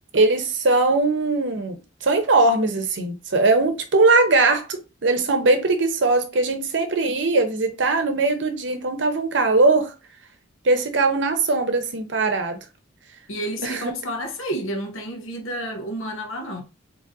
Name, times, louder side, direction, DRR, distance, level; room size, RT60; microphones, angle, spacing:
voice 1, 0.1-9.9 10.6-12.6 13.6-13.9, right 3 dB, 60° right, 0.7 m, -20 dB
voice 2, 13.3-16.6, equal, 90° left, 0.9 m, -30 dB
3.8 x 2.9 x 2.7 m
head